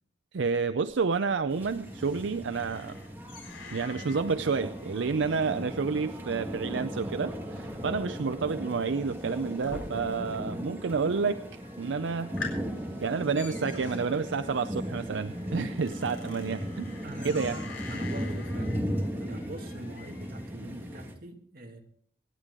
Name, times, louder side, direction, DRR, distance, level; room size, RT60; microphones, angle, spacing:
voice 1, 0.3-3.0 3.7-12.3 13.0-17.0 17.2-17.6, right 5 dB, 75° right, 11 dB, 0.5 m, -30 dB
sound 1, 0.9-10.5 10.7-11.3 11.7-11.8 12.1-20.5, left 4 dB, 80° left, 4.1 m, -47 dB
sound 2, 1.5-21.2, equal, 10° right, 1.6 m, -37 dB
Telephone, 2.1-17.8, left 1 dB, 30° left, 4.6 m, -60 dB
voice 2, 17.0-17.6 17.9-21.8, right 1 dB, 50° right, 2 dB, 2.2 m, -43 dB
24.5 x 10.0 x 3.7 m, 0.63 s
head